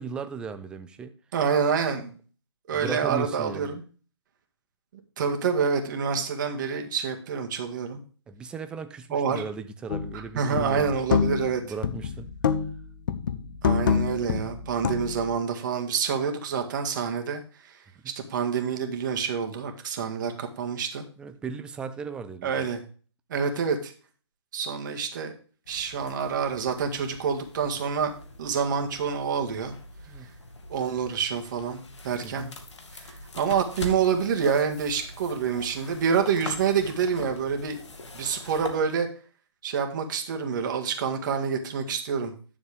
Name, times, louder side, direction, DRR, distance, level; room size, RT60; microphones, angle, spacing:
voice 1, 0.0-1.2 2.7-3.7 8.3-11.2 11.6-12.3 18.0-18.1 21.2-22.7 30.1-30.3 32.2-32.5, right 5 dB, 5° right, 0.4 m, -37 dB
voice 2, 1.3-2.2 2.7-3.8 5.2-8.0 9.1-9.4 10.4-11.6 13.6-17.8 18.1-21.0 22.4-22.8 23.3-23.9 24.5-25.3 25.7-28.1 28.4-29.7 30.7-31.8 32.0-32.5 32.9-33.0 33.4-37.8 38.1-39.1 39.6-42.3, right 6 dB, 40° right, 1.8 m, -27 dB
sound 1, 9.9-10.2 10.6-11.6 11.8-12.8 13.1-15.3, left 7 dB, 45° left, 0.8 m, -26 dB
sound 2, 25.6-38.8, left 2 dB, 70° left, 2.2 m, -43 dB
11.0 x 7.0 x 3.4 m
hypercardioid pair, 150°, 16 cm